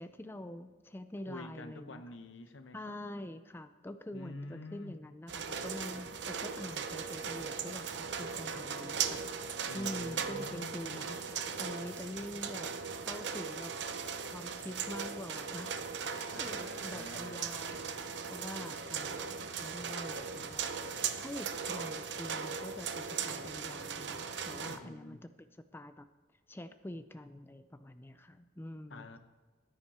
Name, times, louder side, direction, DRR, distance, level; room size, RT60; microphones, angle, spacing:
voice 1, 0.0-2.0 2.7-9.4 9.7-12.7 13.0-13.7 14.2-20.6 20.9-25.2 25.7-26.1 26.5-29.0, left 1 dB, 10° left, 9 dB, 0.4 m, -45 dB
voice 2, 1.3-3.0 4.1-5.0 9.7-11.1 16.3-17.6 24.7-25.2 28.9-29.2, left 2 dB, 90° left, 10 dB, 0.9 m, -48 dB
sound 1, 5.3-24.8, right 6 dB, 70° right, 0.7 m, -38 dB
13.5 x 10.5 x 4.3 m, 1.3 s
head